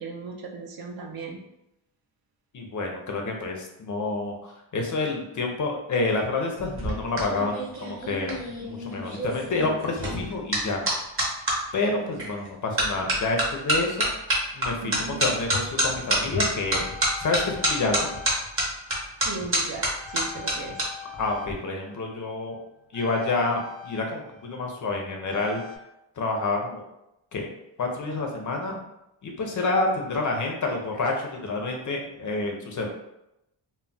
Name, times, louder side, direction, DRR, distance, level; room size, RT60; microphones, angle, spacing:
voice 1, 0.0-1.4 12.0-12.2 14.8-15.2 19.2-20.8, right 4 dB, 50° right, 1 dB, 0.5 m, -37 dB
voice 2, 2.5-10.8 11.7-14.1 14.5-16.9 17.2-18.1 21.2-22.6 22.9-25.6 26.2-26.8 27.3-27.5 27.8-28.8 29.2-32.9, left 3 dB, 40° left, 2 dB, 0.4 m, -28 dB
sound 1, 6.6-11.6 12.2-12.5 12.8-20.9 21.1-21.5, right 1 dB, 25° right, 0.8 m, -27 dB
sound 2, 16.7-19.6 20.0-25.8, left 7 dB, 80° right, 1.1 m, -43 dB
2.2 x 2.0 x 3.8 m, 0.85 s
cardioid pair, 140°, 49 cm